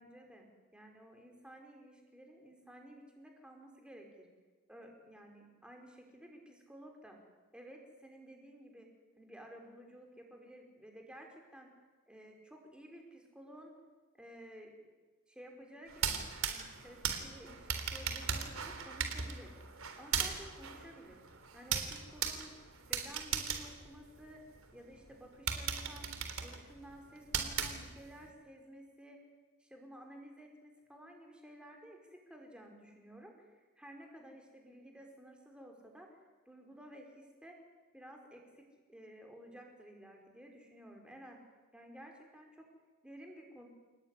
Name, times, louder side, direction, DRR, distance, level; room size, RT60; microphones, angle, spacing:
voice 1, 0.0-0.5 0.7-4.3 4.7-7.2 7.5-8.9 9.2-11.7 12.1-13.7 14.1-14.7 15.3-19.5 20.0-21.2 21.5-22.5 22.9-24.4 24.7-26.1 26.4-29.2 29.6-36.2 36.4-37.6 37.9-41.4 41.7-42.6 43.0-43.7, equal, 5° right, 2 dB, 5.0 m, -54 dB
sound 1, 15.9-24.6 25.1-25.2 25.5-28.2, right 7 dB, 85° right, 3.6 m, -38 dB
29.5 x 19.5 x 9.9 m, 1.3 s
head